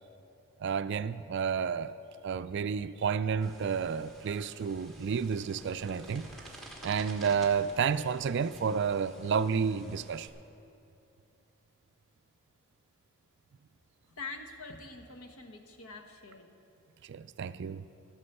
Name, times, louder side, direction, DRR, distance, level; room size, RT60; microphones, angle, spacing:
voice 1, 0.6-1.9 2.2-6.3 6.8-10.3 17.1-17.8, right 6 dB, 50° right, 0.3 m, -31 dB
sound 1, 3.4-10.3, right 1 dB, ahead, 1.4 m, -51 dB
voice 2, 14.2-16.5, left 3 dB, 70° left, 1.2 m, -44 dB
12.5 x 9.7 x 6.7 m
head